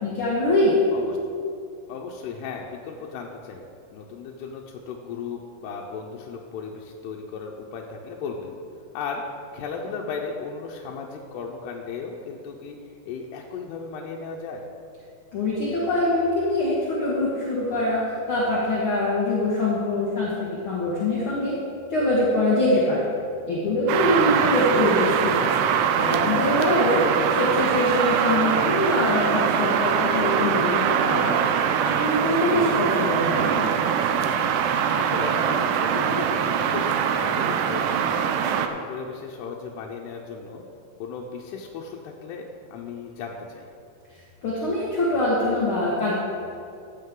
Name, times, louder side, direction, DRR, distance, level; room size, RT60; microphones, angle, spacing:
voice 1, 0.0-0.8 15.3-18.0 18.3-20.3 20.6-21.5 21.9-23.1 23.4-25.5 25.9-31.4 31.8-33.6 44.4-46.1, left 1 dB, 50° left, -6 dB, 1.5 m, -23 dB
voice 2, 1.9-3.7 3.9-8.6 8.9-9.2 9.5-12.8 13.1-14.7 24.1-24.5 32.5-32.9 34.9-38.2 38.5-40.6 41.0-43.7, left 5 dB, 85° left, -1 dB, 2.8 m, -36 dB
sound 1, 23.9-38.7, right 8 dB, 90° right, 2.8 m, -23 dB
15.0 x 8.7 x 3.8 m, 2.4 s
omnidirectional pair, 4.6 m